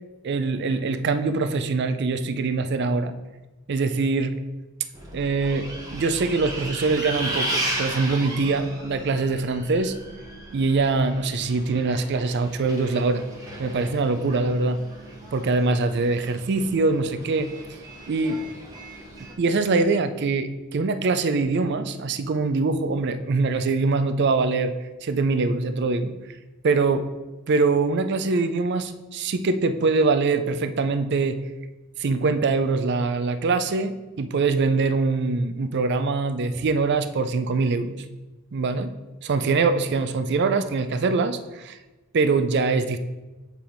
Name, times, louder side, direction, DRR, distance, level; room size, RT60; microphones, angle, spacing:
voice 1, 0.2-3.1 3.7-4.4 5.1-9.9 10.5-13.2 13.6-14.8 15.3-17.5 18.1-18.4 19.4-24.8 25.0-26.1 26.6-27.1 27.5-31.4 32.0-38.0 38.5-38.9 39.2-41.8 42.1-43.0, right 3 dB, 50° right, 11 dB, 0.4 m, -23 dB
Bus, 4.9-19.3, right 1 dB, 15° right, 1.0 m, -35 dB
7.3 x 3.4 x 4.4 m, 1.1 s
head